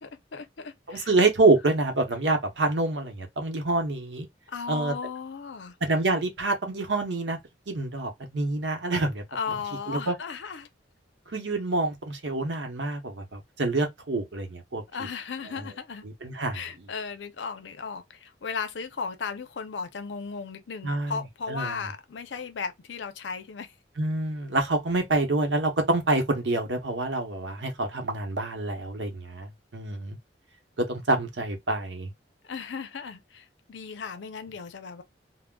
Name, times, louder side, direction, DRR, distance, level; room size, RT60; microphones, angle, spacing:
voice 1, 0.0-1.1 4.5-5.8 9.3-10.7 14.9-16.1 16.5-23.7 32.5-35.0, left 5 dB, 90° left, 0.5 m, -36 dB
voice 2, 0.9-4.3 4.7-4.9 5.8-7.4 7.7-9.2 9.9-10.1 11.3-14.8 16.2-16.6 20.8-21.2 21.5-21.8 24.0-30.2 30.8-32.1, right 2 dB, 85° right, 0.8 m, -27 dB
3.6 x 2.1 x 2.2 m
head